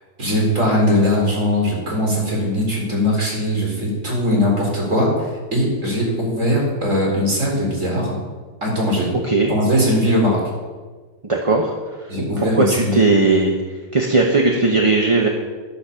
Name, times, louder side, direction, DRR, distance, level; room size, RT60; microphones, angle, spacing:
voice 1, 0.2-8.2 8.6-9.1 9.5-10.4 12.1-13.0, left 1 dB, 45° right, -2 dB, 4.6 m, -20 dB
voice 2, 11.2-11.7 12.4-13.5 13.9-15.3, right 3 dB, 20° right, 0 dB, 1.0 m, -17 dB
13.0 x 11.0 x 5.9 m, 1.4 s
omnidirectional pair, 1.9 m